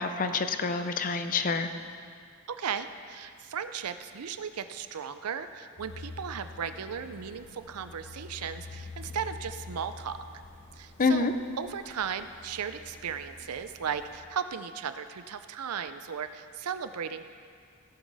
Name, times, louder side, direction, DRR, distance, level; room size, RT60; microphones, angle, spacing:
voice 1, 0.0-1.7 11.0-11.3, left 4 dB, 40° left, 9 dB, 0.6 m, -27 dB
voice 2, 2.5-10.2 10.8-11.3 11.6-17.2, right 7 dB, 90° right, 10 dB, 0.5 m, -36 dB
sound 1, 5.8-14.2, left 3 dB, 60° left, 1.3 m, -47 dB
16.5 x 7.3 x 4.0 m, 2.1 s
head